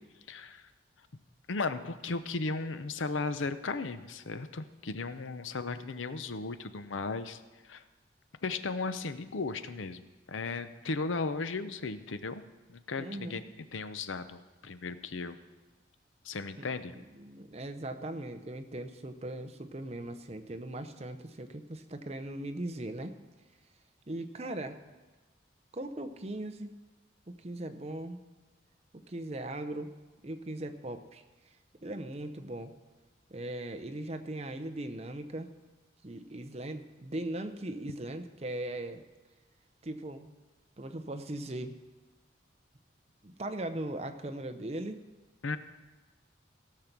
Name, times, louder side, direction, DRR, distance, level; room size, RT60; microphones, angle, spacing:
voice 1, 0.3-0.7 1.5-7.8 8.4-12.4 12.7-13.4 13.7-15.4 16.2-16.9 45.4-45.6, left 3 dB, 90° left, 11 dB, 0.7 m, -36 dB
voice 2, 13.0-13.4 16.6-23.1 24.1-24.8 25.7-26.7 27.3-28.2 28.9-29.9 30.2-31.2 31.8-32.7 33.3-35.5 36.0-39.0 39.8-40.3 40.8-41.8 43.2-45.0, right 1 dB, 35° right, 8 dB, 0.7 m, -39 dB
16.5 x 6.7 x 5.9 m, 1.3 s
head